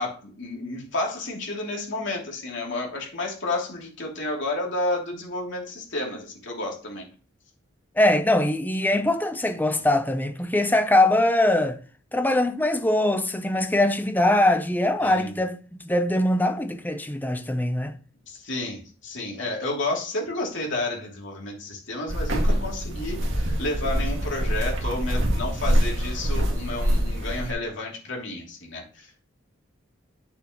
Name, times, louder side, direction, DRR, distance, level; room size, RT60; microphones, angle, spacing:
voice 1, 0.0-7.1 15.0-15.4 18.3-29.2, left 2 dB, 60° left, 3.0 m, -31 dB
voice 2, 8.0-11.8 12.1-17.9, left 1 dB, 10° left, 0.7 m, -22 dB
sound 1, 22.1-27.5, equal, 65° right, 2.1 m, -25 dB
8.7 x 7.1 x 3.1 m
head